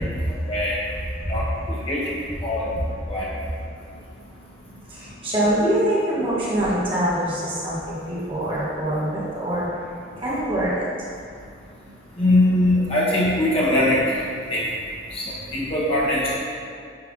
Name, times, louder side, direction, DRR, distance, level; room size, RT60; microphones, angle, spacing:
voice 1, 1.2-1.8 3.4-3.5 4.9-9.8 10.2-10.8, right 1 dB, 30° right, -8 dB, 1.5 m, -24 dB
voice 2, 1.7-2.0 2.4-2.6 3.1-3.2 12.2-14.0 14.5-14.6 15.1-15.2 15.5-16.4, left 1 dB, 30° left, -7 dB, 1.6 m, -21 dB
9.8 x 3.5 x 3.7 m, 2.4 s
head